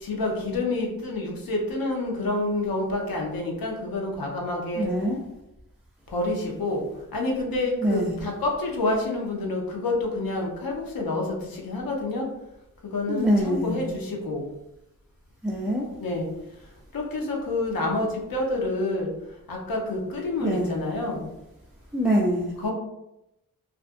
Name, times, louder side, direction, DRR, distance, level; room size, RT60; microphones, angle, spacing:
voice 1, 0.0-4.9 6.1-6.8 7.1-12.3 12.9-14.4 16.0-16.3 16.9-19.1 19.5-21.3 22.6-22.7, left 2 dB, 80° left, 0 dB, 0.7 m, -28 dB
voice 2, 4.8-5.2 7.8-8.2 13.1-13.8 15.4-15.9 20.4-20.7 21.9-22.5, equal, 5° right, -5 dB, 0.4 m, -24 dB
2.5 x 2.3 x 2.5 m, 0.87 s
wide cardioid pair, 75°, 35 cm